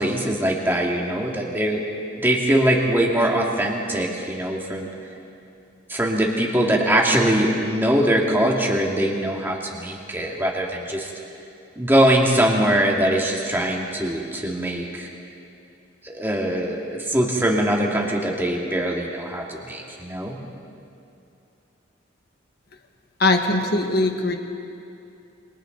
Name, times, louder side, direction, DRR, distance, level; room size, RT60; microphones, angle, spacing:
voice 1, 0.0-1.8 2.2-4.9 5.9-11.1 11.8-15.1 16.0-20.4, right 1 dB, 10° right, -1 dB, 2.2 m, -22 dB
voice 2, 23.2-24.3, left 2 dB, 50° left, 4 dB, 1.6 m, -20 dB
28.5 x 23.5 x 4.0 m, 2.6 s
head